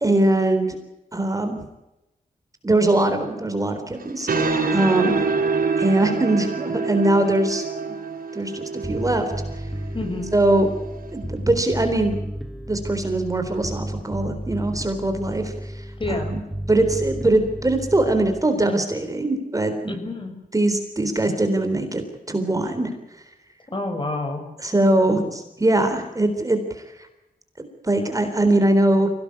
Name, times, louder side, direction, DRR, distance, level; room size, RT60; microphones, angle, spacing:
voice 1, 0.0-0.8 1.1-1.6 2.6-5.2 5.8-7.6 8.3-9.3 10.3-10.7 11.1-12.3 12.7-16.4 16.7-19.7 20.5-22.9 24.6-26.8 27.6-29.1, right 1 dB, 20° right, 6 dB, 3.9 m, -21 dB
sound 1, 4.0-11.2, right 4 dB, 70° right, 6.6 m, -26 dB
Bass guitar, 8.8-18.4, equal, ahead, 2.4 m, -33 dB
voice 2, 9.9-10.3 16.0-16.3 19.9-20.4 23.7-24.5, left 2 dB, 35° left, 6 dB, 5.8 m, -28 dB
24.0 x 18.0 x 8.4 m, 0.95 s
wide cardioid pair, 95°, 15 cm